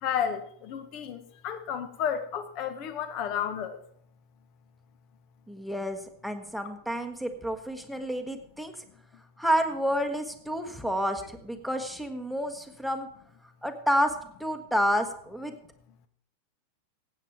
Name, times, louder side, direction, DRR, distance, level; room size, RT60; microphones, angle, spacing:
voice 1, 0.0-3.8, left 8 dB, 40° left, 11 dB, 1.3 m, -32 dB
voice 2, 5.5-8.7 9.4-13.1 13.6-15.5, equal, ahead, 8 dB, 1.4 m, -29 dB
15.5 x 8.7 x 4.6 m, 0.67 s
figure-of-eight pair, 90°, 0 cm